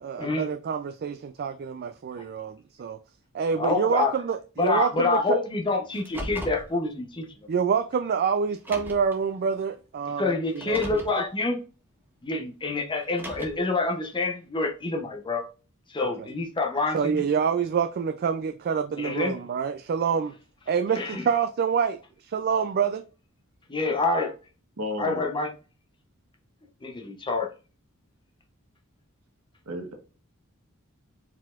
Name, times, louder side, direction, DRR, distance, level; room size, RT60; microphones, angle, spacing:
voice 1, 0.0-3.0 3.3-5.4 7.5-10.8 16.0-16.3 16.9-20.3 20.7-23.0, right 6 dB, 45° right, 0.3 m, -27 dB
voice 2, 3.6-4.1 4.6-7.3 10.2-11.6 12.2-15.5 15.9-17.2 19.0-19.3 21.0-21.2 23.7-24.3 25.0-25.5 26.8-27.5, left 3 dB, 20° left, 0.7 m, -27 dB
Car, 5.9-6.7 7.7-7.8 8.5-9.2 10.5-11.2 13.0-13.7, equal, 10° right, 0.8 m, -37 dB
voice 3, 24.8-25.2 29.7-29.9, left 1 dB, 75° right, 1.3 m, -32 dB
4.5 x 4.0 x 2.4 m
head